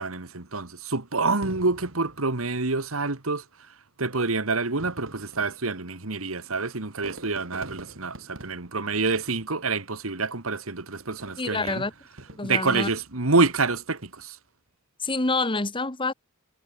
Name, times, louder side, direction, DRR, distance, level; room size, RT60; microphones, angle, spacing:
voice 1, 0.0-3.4 4.0-11.8 12.4-14.4, right 3 dB, 90° right, 2.1 m, -27 dB
Fireworks, 1.4-3.0 3.9-4.0 4.6-9.9 11.0-12.8 13.3-13.8, right 1 dB, 70° right, 3.8 m, -46 dB
voice 2, 11.4-11.9 12.4-12.9 15.0-16.1, left 3 dB, 25° left, 1.6 m, -27 dB
head